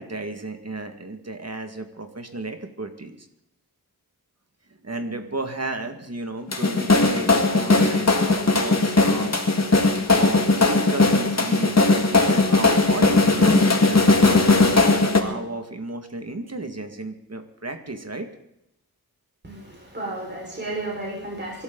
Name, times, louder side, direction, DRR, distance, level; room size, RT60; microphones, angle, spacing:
voice 1, 0.0-3.3 4.8-9.3 10.1-18.3, right 2 dB, 45° right, 6 dB, 2.0 m, -33 dB
sound 1, 6.5-15.2, left 3 dB, 45° left, 2.0 m, -18 dB
voice 2, 19.4-21.6, right 2 dB, 30° right, -3 dB, 5.1 m, -33 dB
25.0 x 12.5 x 4.0 m, 0.83 s
wide cardioid pair, 80°, 36 cm